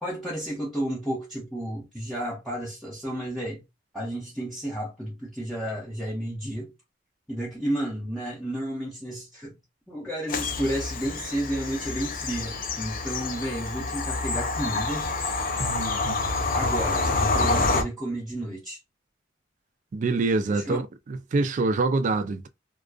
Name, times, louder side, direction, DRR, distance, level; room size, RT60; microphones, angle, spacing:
voice 1, 0.0-3.6 3.9-6.7 7.3-9.6 9.9-15.1 16.5-18.8 20.5-20.8, right 1 dB, ahead, 0.6 m, -32 dB
Bird vocalization bird call bird song / Train, 10.3-17.8, left 3 dB, 45° left, 0.4 m, -27 dB
voice 2, 15.6-16.2 19.9-22.5, right 3 dB, 40° right, 0.3 m, -26 dB
2.4 x 2.2 x 2.3 m
head